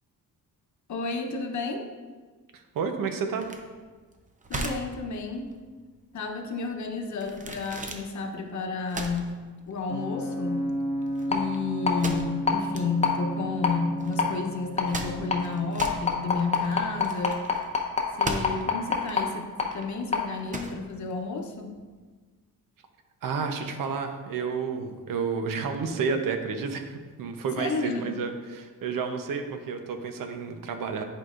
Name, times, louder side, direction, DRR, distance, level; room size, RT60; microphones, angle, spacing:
voice 1, 0.9-1.9 4.5-5.5 6.1-9.4 9.7-10.8 11.3-17.4 18.2-19.5 19.7-21.7 27.6-28.1, left 4 dB, 55° left, 3 dB, 0.9 m, -31 dB
voice 2, 2.5-3.5 23.2-31.0, right 5 dB, 70° right, 6 dB, 0.8 m, -31 dB
sound 1, 3.4-21.9, right 2 dB, 20° right, 0.6 m, -39 dB
sound 2, 9.9-16.9, equal, ahead, 1.5 m, -34 dB
sound 3, 11.3-11.4 11.8-11.9 12.5-12.6 13.0-13.1 13.6-13.7 14.2-14.3 14.8-14.9 15.3-15.4 15.8-19.2 19.6-19.7 20.1-20.2, left 5 dB, 20° left, 0.8 m, -24 dB
10.0 x 4.8 x 2.5 m, 1.4 s
cardioid pair, 120°, 35 cm